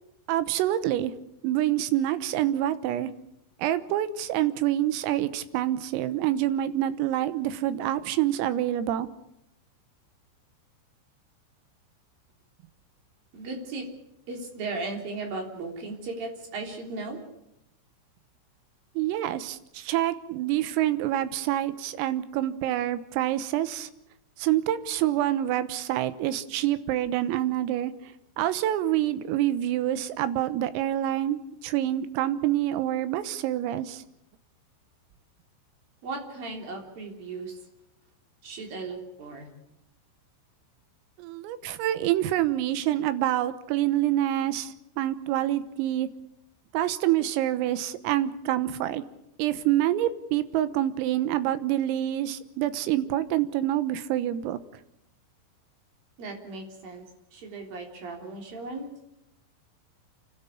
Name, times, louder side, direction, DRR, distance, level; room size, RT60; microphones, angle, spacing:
voice 1, 0.3-1.1 1.4-3.1 3.6-9.1 19.0-23.9 24.4-34.0 41.2-46.1 46.7-49.0 49.4-54.6, right 13 dB, 90° right, 13 dB, 3.8 m, -27 dB
voice 2, 13.3-13.9 14.3-17.2 36.0-37.6 38.4-39.5 56.2-57.0 57.3-58.8, right 3 dB, 45° right, 2 dB, 4.9 m, -36 dB
29.5 x 13.0 x 8.6 m, 0.85 s
omnidirectional pair, 5.9 m